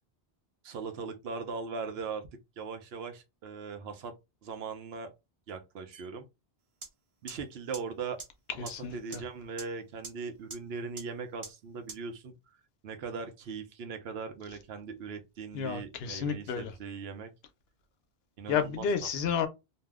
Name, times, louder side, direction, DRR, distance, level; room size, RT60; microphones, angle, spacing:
voice 1, 0.6-2.3 2.6-4.1 4.4-5.1 5.5-6.3 7.2-8.2 8.5-12.3 12.8-17.3 18.4-18.9, right 5 dB, 80° right, 0.9 m, -39 dB
sound 1, 6.8-6.9 7.3-7.4 7.7-7.8 8.2-8.3 8.7-8.8 9.1-9.2 9.6-9.7 10.0-10.1 10.5-10.6 11.0-11.1 11.4-11.5 11.9-12.0, right 3 dB, 40° right, 0.6 m, -40 dB
voice 2, 8.6-9.2 15.5-16.7 18.5-19.5, left 7 dB, 80° left, 0.8 m, -31 dB
2.7 x 2.0 x 3.4 m
omnidirectional pair, 1.0 m